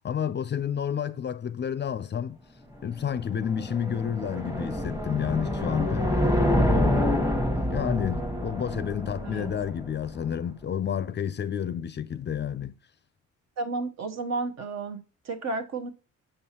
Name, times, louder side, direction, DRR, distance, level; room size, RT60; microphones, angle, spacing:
voice 1, 0.0-2.4 2.8-6.1 6.7-7.4 7.7-12.7, left 8 dB, 35° left, 0.5 m, -30 dB
sound 1, 2.8-10.1, left 1 dB, 10° right, 1.2 m, -27 dB
voice 2, 13.6-15.9, right 3 dB, 60° right, 1.0 m, -32 dB
6.8 x 5.5 x 2.9 m
cardioid pair, 90°, 30 cm